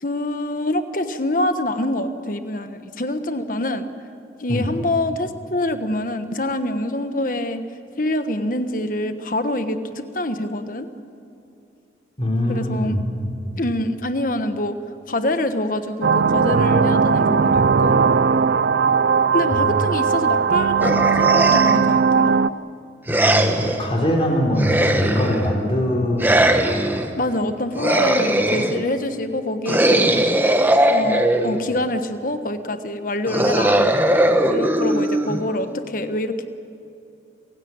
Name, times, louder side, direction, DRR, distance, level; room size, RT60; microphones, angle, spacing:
voice 1, 0.0-3.9 4.4-7.6 8.0-10.9 12.5-13.0 13.6-14.8 15.1-18.0 19.3-22.4 27.2-30.2 30.9-33.8 34.5-36.4, left 1 dB, 45° left, 9 dB, 1.3 m, -25 dB
voice 2, 12.2-13.3 19.5-19.8 23.1-26.8, equal, 30° left, 0 dB, 3.5 m, -23 dB
sound 1, 16.0-22.5, right 5 dB, 65° right, 0.5 m, -18 dB
sound 2, 20.8-21.9 23.1-23.8 24.6-25.5 26.2-27.1 27.8-28.8 29.7-31.7 33.3-35.7, right 1 dB, 10° right, 1.2 m, -19 dB
28.5 x 16.5 x 8.8 m, 2.7 s
head